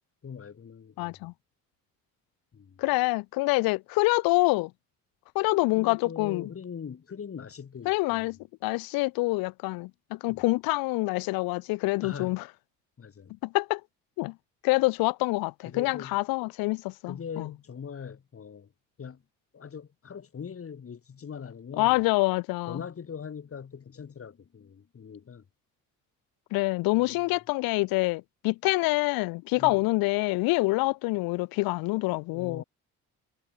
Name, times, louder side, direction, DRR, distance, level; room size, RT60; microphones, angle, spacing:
voice 1, 0.2-1.2 2.5-2.8 5.7-8.3 10.3-10.4 12.0-12.4 13.0-13.3 15.6-16.2 17.1-18.7 19.0-19.2 19.5-22.0 22.7-25.4 26.9-27.4 29.6-29.8 32.3-32.6, left 7 dB, 40° left, 3.0 m, -41 dB
voice 2, 1.0-1.3 2.8-4.7 5.3-6.5 7.9-8.4 8.6-12.4 13.4-13.8 14.2-14.3 14.6-17.5 21.8-22.8 26.5-32.6, left 23 dB, 85° left, 0.5 m, -26 dB
cardioid pair, 85°, 35 cm